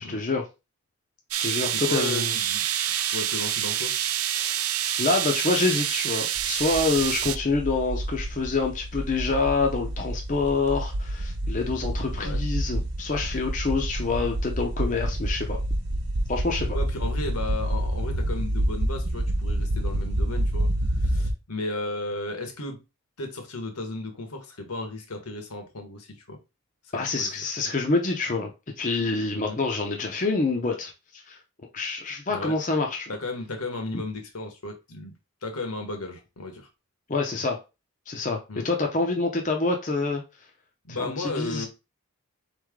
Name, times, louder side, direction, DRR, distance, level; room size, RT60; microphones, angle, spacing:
voice 1, 0.1-0.4 1.4-2.3 4.3-4.6 5.0-15.6 16.3-16.8 26.9-28.5 28.8-31.4 31.7-33.1 37.1-37.6 38.1-38.4 38.6-40.2 41.0-41.7, left 3 dB, 35° left, 0.6 m, -27 dB
sound 1, 1.3-7.4, right 11 dB, 75° right, 0.4 m, -27 dB
voice 2, 1.6-2.6 3.1-3.9 12.1-12.4 16.7-20.7 21.0-22.8 23.2-26.4 27.2-27.7 29.3-29.6 32.3-32.5 33.1-35.1 35.4-36.7 38.5-38.7 40.8-41.7, left 2 dB, 80° left, 1.2 m, -34 dB
sound 2, 6.4-21.3, right 1 dB, 50° right, 0.8 m, -28 dB
4.1 x 3.2 x 3.6 m
head